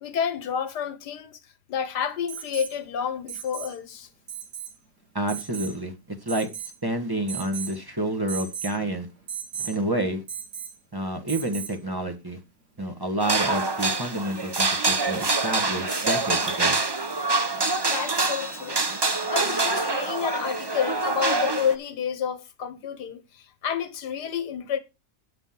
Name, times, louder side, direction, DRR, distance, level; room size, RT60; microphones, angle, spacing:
voice 1, 0.0-1.4 1.7-4.1 17.9-18.9 19.3-24.8, left 8 dB, 80° left, 1.7 m, -29 dB
Alarm, 2.3-2.7 3.3-3.8 4.3-4.7 5.3-5.8 6.3-6.8 7.3-7.8 8.3-8.7 9.3-9.8 10.3-10.8 11.3-11.8 13.5-13.6, right 8 dB, 80° right, 3.0 m, -36 dB
voice 2, 5.1-6.5 6.8-9.1 9.6-10.2 10.9-12.4 12.8-16.8, right 1 dB, 15° right, 1.4 m, -29 dB
sound 1, 13.2-21.7, right 3 dB, 30° right, 0.4 m, -25 dB
9.7 x 5.9 x 5.9 m
omnidirectional pair, 1.7 m